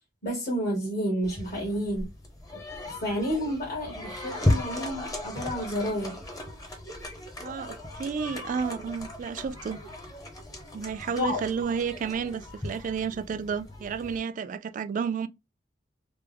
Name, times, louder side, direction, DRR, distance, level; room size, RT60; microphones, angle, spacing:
voice 1, 0.2-2.1 3.0-6.2 11.2-11.4, equal, 60° left, 1.3 m, -30 dB
sound 1, 1.2-14.2, left 1 dB, 20° left, 0.7 m, -35 dB
voice 2, 7.4-9.8 10.7-15.3, right 6 dB, 45° right, 0.3 m, -31 dB
3.4 x 2.0 x 3.3 m
head